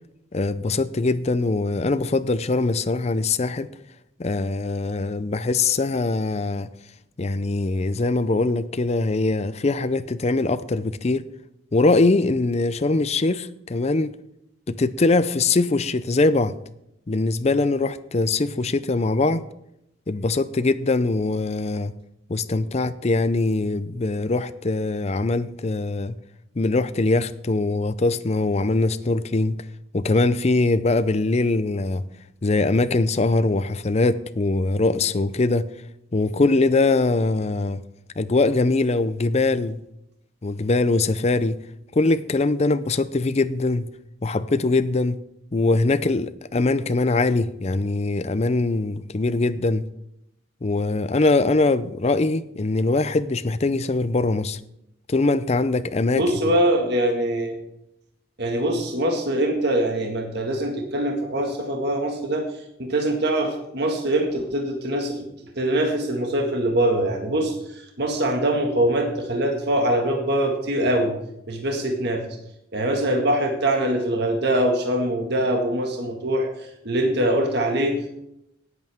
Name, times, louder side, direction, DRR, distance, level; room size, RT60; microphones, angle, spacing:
voice 1, 0.3-3.7 4.2-6.7 7.2-11.2 11.7-14.1 14.7-16.5 17.1-19.4 20.1-21.9 22.3-26.1 26.6-29.6 29.9-32.0 32.4-35.7 36.1-37.8 38.2-39.8 40.4-41.6 41.9-43.9 44.2-45.2 45.5-49.8 50.6-54.6 55.1-56.2, left 3 dB, 35° left, 0.5 m, -22 dB
voice 2, 56.1-57.5 58.4-62.5 62.8-65.3 65.6-67.6 68.0-71.1 71.5-72.3 72.7-76.5 76.8-78.1, right 1 dB, 55° right, 1.8 m, -23 dB
18.0 x 8.2 x 3.6 m
head